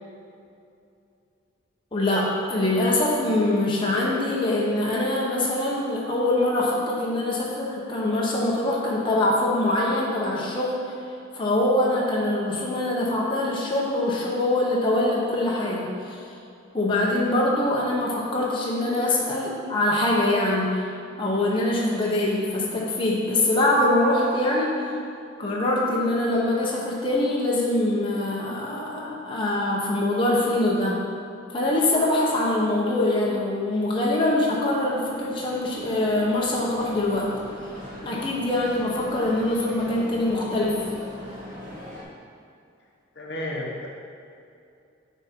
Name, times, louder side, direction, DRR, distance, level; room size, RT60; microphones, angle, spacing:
voice 1, 1.9-10.8 11.3-16.2 16.7-20.9 21.2-24.9 25.4-31.0 31.5-37.3 38.0-40.8, left 1 dB, 25° left, -4 dB, 0.9 m, -23 dB
sound 1, 34.7-42.0, equal, 40° right, 1.4 m, -41 dB
voice 2, 43.2-43.9, left 1 dB, 60° left, -2 dB, 0.9 m, -32 dB
9.4 x 3.6 x 4.4 m, 2.6 s
head